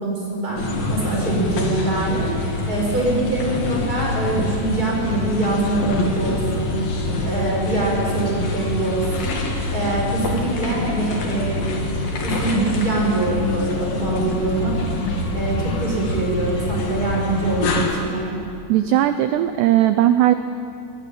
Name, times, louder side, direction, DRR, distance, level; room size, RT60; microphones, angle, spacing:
voice 1, 0.0-2.3 2.7-6.8 7.2-9.4 9.7-11.7 12.2-14.8 15.3-18.4, right 2 dB, 15° right, -2 dB, 6.3 m, -24 dB
sound 1, 0.6-17.9, left 2 dB, 50° left, 3.7 m, -25 dB
voice 2, 18.7-20.3, right 13 dB, 90° right, 10 dB, 2.4 m, -17 dB
22.5 x 19.0 x 9.2 m, 2.4 s
omnidirectional pair, 5.8 m